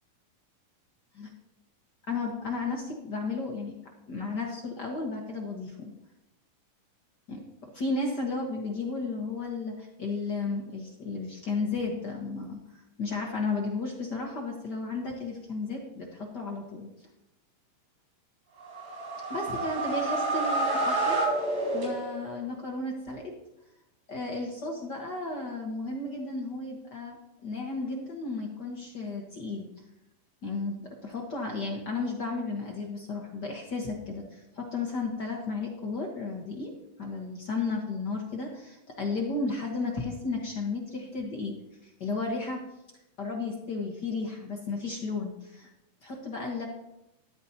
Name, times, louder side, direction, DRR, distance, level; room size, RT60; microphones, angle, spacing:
voice 1, 2.1-3.8 4.1-5.9 7.3-12.6 13.0-16.9 19.3-21.2 21.7-23.2 24.1-29.7 30.4-36.7 37.0-41.5 41.8-42.6 43.2-45.7 46.0-46.7, left 3 dB, 60° left, 0 dB, 1.1 m, -33 dB
sound 1, 18.6-22.4, right 2 dB, 75° right, 5.7 m, -29 dB
13.0 x 12.0 x 2.9 m, 0.90 s
omnidirectional pair, 3.9 m